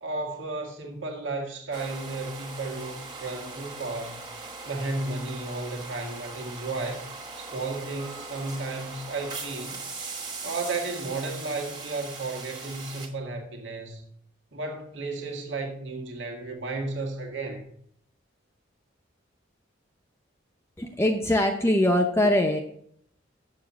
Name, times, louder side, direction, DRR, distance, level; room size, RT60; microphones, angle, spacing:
voice 1, 0.0-4.3 4.7-7.0 7.4-9.8 10.4-14.0 14.5-17.7, right 3 dB, 70° right, 1.8 m, -33 dB
sound 1, 1.7-13.1, right 3 dB, 20° right, 1.8 m, -40 dB
voice 2, 20.8-22.6, left 1 dB, 15° left, 0.7 m, -22 dB
7.2 x 7.2 x 7.3 m
head